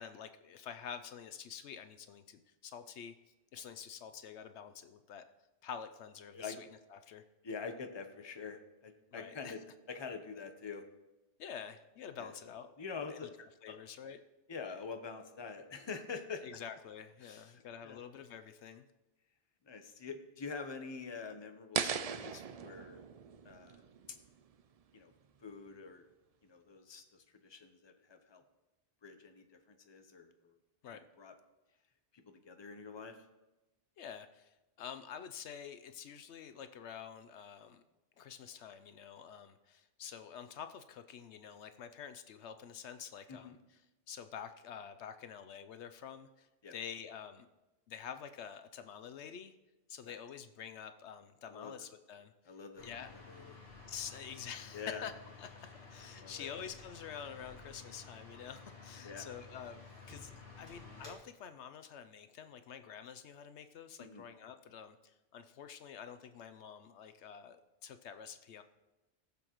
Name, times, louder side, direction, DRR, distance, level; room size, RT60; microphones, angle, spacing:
voice 1, 0.0-3.1 3.5-5.2 5.6-7.2 9.1-9.6 11.4-12.7 13.1-14.2 16.4-18.9 30.8-31.0 34.0-37.8 38.2-43.8 44.1-47.5 47.9-49.5 49.9-52.6 52.8-53.1 53.9-55.1 55.4-55.5 55.9-68.6, left 8 dB, 75° left, 10 dB, 0.9 m, -48 dB
voice 2, 7.4-9.6 9.9-10.8 12.2-12.3 12.8-13.3 13.7-13.8 14.5-16.4 17.2-18.0 19.7-23.0 23.4-23.8 24.9-25.1 25.4-26.0 26.5-27.0 27.4-28.4 29.0-30.5 30.9-31.3 32.5-33.2 43.3-43.5 46.6-46.7 50.0-50.1 51.5-51.7 52.5-53.5 54.7-55.0 56.2-56.5 59.0-59.2 64.0-64.2, left 5 dB, 25° left, 6 dB, 0.8 m, -45 dB
sound 1, 21.7-24.8, right 7 dB, 80° right, 0.3 m, -39 dB
sound 2, 52.8-61.2, left 4 dB, 45° left, 2.4 m, -53 dB
19.0 x 7.0 x 3.0 m, 1.0 s
omnidirectional pair, 1.2 m